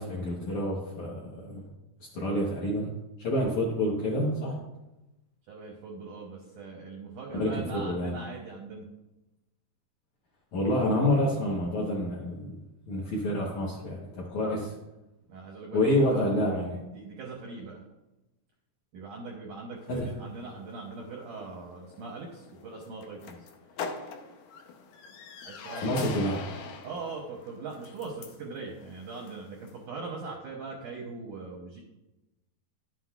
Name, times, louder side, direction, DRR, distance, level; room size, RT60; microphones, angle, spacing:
voice 1, 0.0-1.6 2.1-2.9 3.2-4.6 7.3-8.1 10.5-12.6 12.9-14.8 15.7-16.8 19.9-20.1 25.8-26.4, left 1 dB, 70° left, -4 dB, 1.8 m, -28 dB
voice 2, 5.5-8.9 15.3-16.3 16.7-17.8 18.9-23.5 25.4-26.4 26.8-31.8, right 4 dB, 80° right, -1 dB, 1.8 m, -41 dB
sound 1, 19.8-29.9, left 5 dB, 90° left, 1.8 m, -44 dB
11.5 x 7.8 x 2.4 m, 0.99 s
omnidirectional pair, 4.9 m